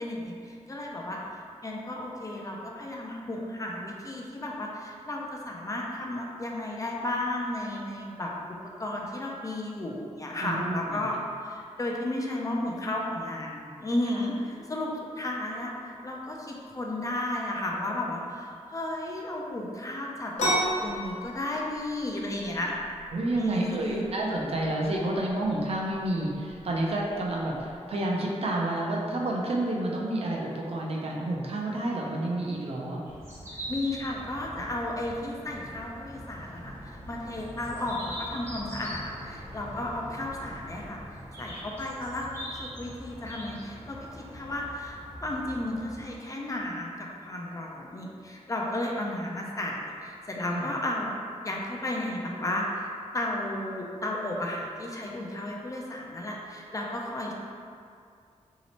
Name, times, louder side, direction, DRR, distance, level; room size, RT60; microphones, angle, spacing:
voice 1, 0.0-8.3 8.8-11.2 11.4-20.5 20.8-22.7 23.4-24.1 33.7-36.8 37.1-51.1 51.4-57.3, left 1 dB, 30° left, -1 dB, 0.4 m, -33 dB
voice 2, 10.4-11.0 23.1-33.0 50.5-50.7, right 1 dB, 55° right, -2 dB, 0.5 m, -29 dB
sound 1, 20.4-27.8, equal, 75° left, 0.8 m, -34 dB
sound 2, 33.1-46.1, equal, 20° right, 0.7 m, -42 dB
3.0 x 2.8 x 2.9 m, 2.3 s
wide cardioid pair, 115°, 12 cm